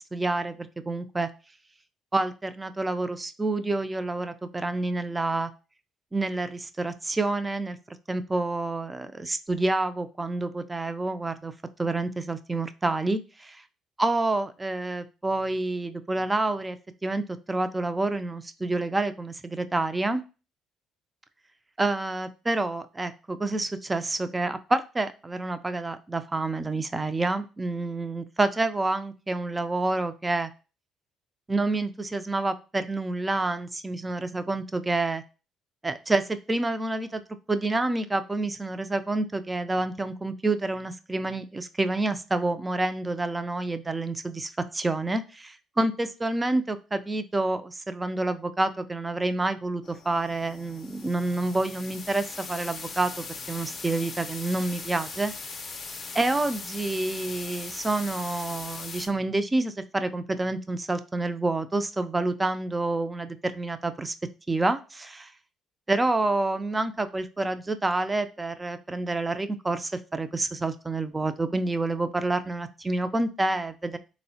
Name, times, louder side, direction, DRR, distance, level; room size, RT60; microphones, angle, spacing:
voice 1, 0.1-1.3 2.1-5.5 6.1-11.5 11.8-13.6 14.0-16.8 17.0-20.2 21.8-30.5 31.5-35.2 35.8-37.2 37.5-55.3 56.1-64.1 64.5-65.3 65.9-74.0, right 2 dB, 20° right, 0.3 m, -28 dB
sound 1, 49.8-59.1, left 4 dB, 40° left, 0.5 m, -40 dB
3.4 x 2.0 x 2.6 m
supercardioid pair, 65°, 0 cm